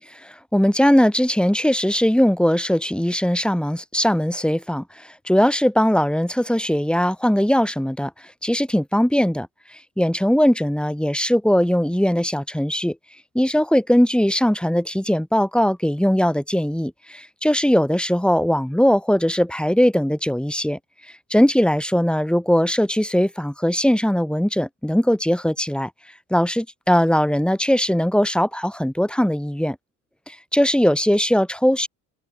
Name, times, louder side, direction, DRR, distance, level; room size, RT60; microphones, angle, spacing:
voice 1, 0.2-13.0 13.3-20.8 21.3-25.9 26.3-29.8 30.3-31.9, equal, ahead, 6.0 m, -20 dB
open air
figure-of-eight pair, 55°, 47 cm